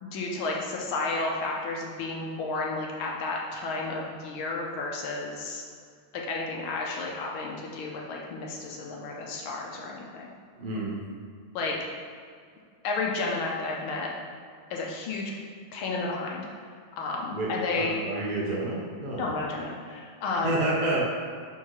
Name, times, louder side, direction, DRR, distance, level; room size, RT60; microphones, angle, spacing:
voice 1, 0.0-5.6 6.1-10.3 11.5-11.8 12.8-14.1 14.7-15.3 15.7-16.5 17.0-18.0 19.2-20.6, left 3 dB, 85° left, -2 dB, 1.7 m, -32 dB
voice 2, 10.6-11.0 17.3-17.5 17.7-19.3 20.4-21.0, right 2 dB, 55° right, -4 dB, 0.5 m, -29 dB
5.8 x 4.3 x 4.7 m, 2.1 s
omnidirectional pair, 2.2 m